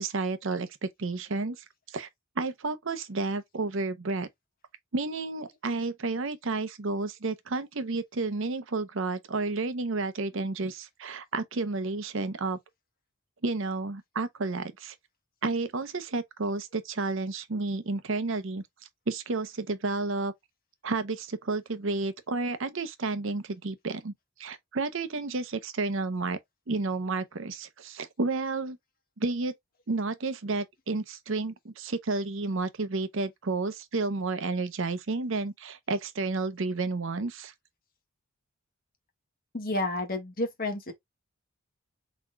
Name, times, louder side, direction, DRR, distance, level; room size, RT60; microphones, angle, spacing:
voice 1, 0.0-2.1 2.4-4.3 4.9-12.6 13.4-14.9 15.4-18.6 19.1-20.3 20.8-24.1 24.4-26.4 26.7-28.8 29.2-29.5 29.9-37.5, right 3 dB, 60° right, 0.7 m, -31 dB
voice 2, 39.5-40.9, left 2 dB, 40° left, 1.5 m, -30 dB
4.2 x 4.2 x 2.2 m
head